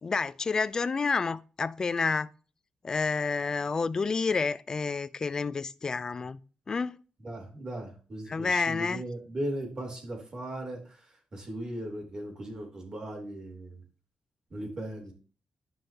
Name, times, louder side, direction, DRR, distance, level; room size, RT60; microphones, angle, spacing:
voice 1, 0.0-2.3 2.8-6.4 6.7-7.0 8.3-9.0, left 4 dB, 30° left, 0.4 m, -29 dB
voice 2, 7.2-10.8 11.3-13.8 14.5-15.1, right 1 dB, 35° right, 3.2 m, -37 dB
13.5 x 5.5 x 2.9 m
wide cardioid pair, 155°, 2 cm